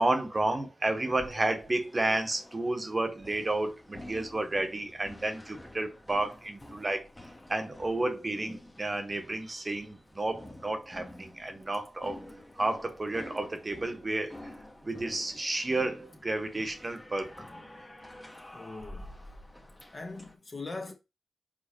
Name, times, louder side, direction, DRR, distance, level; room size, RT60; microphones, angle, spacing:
voice 1, 0.0-7.1 7.5-12.3 12.6-14.4 14.8-17.3, right 2 dB, 35° right, 1.0 m, -31 dB
sound 1, 1.1-20.3, left 1 dB, 20° left, 1.1 m, -49 dB
voice 2, 18.5-19.1 19.9-20.9, left 3 dB, 45° left, 1.1 m, -41 dB
4.9 x 3.8 x 2.8 m
supercardioid pair, 40°, 0 cm